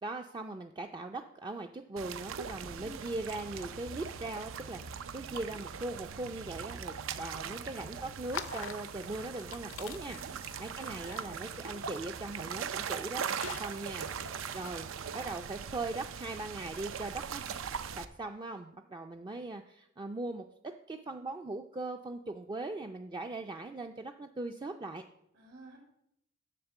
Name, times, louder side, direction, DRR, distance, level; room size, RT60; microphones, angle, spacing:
voice 1, 0.0-10.2 10.6-13.3 13.6-14.1 14.5-14.9 15.1-17.6 17.9-20.5 20.9-25.0, right 2 dB, 20° right, 4 dB, 0.4 m, -40 dB
sound 1, 2.0-18.0, right 7 dB, 80° right, 0.5 m, -40 dB
voice 2, 2.8-3.1 7.3-8.0 10.0-10.4 10.7-11.2 14.0-14.5 25.3-25.8, right 1 dB, 65° right, -6 dB, 3.3 m, -52 dB
sound 2, 8.2-16.2, left 7 dB, 80° left, 0.6 m, -47 dB
10.0 x 3.6 x 7.1 m, 0.77 s
head